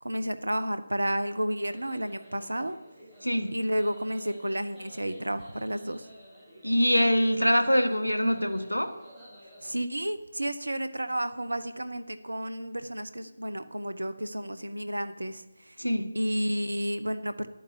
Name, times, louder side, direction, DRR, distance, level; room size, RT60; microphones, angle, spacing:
voice 1, 0.0-2.8 3.5-6.1 9.6-15.7 16.1-17.5, equal, 70° right, 12 dB, 1.0 m, -31 dB
sound 1, 1.6-9.7, equal, ahead, 6.0 m, -52 dB
voice 2, 3.2-3.5 6.6-8.9 15.8-16.1, equal, 85° left, 8 dB, 1.5 m, -24 dB
11.5 x 9.1 x 7.3 m, 1.0 s
figure-of-eight pair, 155°, 0 cm